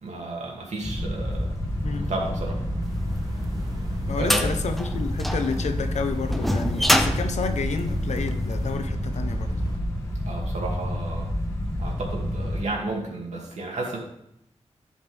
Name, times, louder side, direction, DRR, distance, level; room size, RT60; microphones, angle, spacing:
voice 1, 0.0-1.5 1.9-2.6 4.2-4.5 10.3-11.3 11.8-14.0, right 2 dB, 85° right, -1 dB, 2.4 m, -32 dB
sound 1, 0.8-12.7, equal, 25° left, 1.4 m, -29 dB
sound 2, 0.8-9.8, right 2 dB, 35° right, 1.4 m, -39 dB
sound 3, 3.2-8.6, equal, ahead, 0.6 m, -26 dB
voice 2, 4.1-9.5, left 5 dB, 85° left, 7 dB, 0.9 m, -30 dB
14.0 x 5.2 x 3.5 m, 0.78 s
wide cardioid pair, 145°, 11 cm